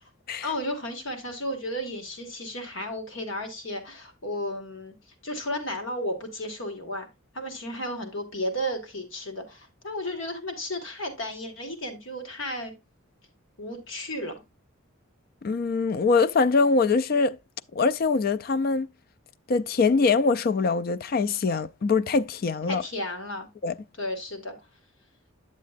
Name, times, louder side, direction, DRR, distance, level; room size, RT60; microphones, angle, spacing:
voice 1, 0.4-4.9 5.2-7.1 7.3-12.7 13.6-14.3 22.7-23.5 24.0-24.6, left 1 dB, 65° left, 1.8 m, -33 dB
voice 2, 15.4-17.4 17.7-18.9 19.5-22.8 23.6-23.7, left 4 dB, 45° left, 0.3 m, -23 dB
9.4 x 7.4 x 2.5 m
head